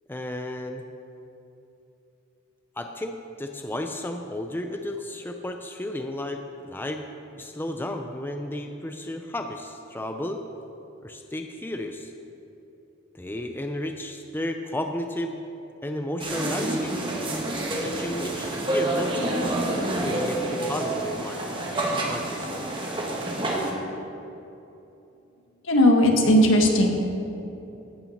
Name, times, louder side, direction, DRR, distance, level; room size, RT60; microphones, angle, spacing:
voice 1, 0.1-0.8 2.8-7.0 7.4-10.4 11.0-12.1 13.1-15.4 15.8-17.0 17.5-19.5 20.0-21.4 22.0-22.7, left 1 dB, 10° left, 5 dB, 0.5 m, -33 dB
sound 1, 16.2-23.7, right 1 dB, 25° right, 1.4 m, -28 dB
voice 2, 25.6-26.9, left 1 dB, 75° left, 2 dB, 1.6 m, -17 dB
15.5 x 6.0 x 6.5 m, 2.9 s
head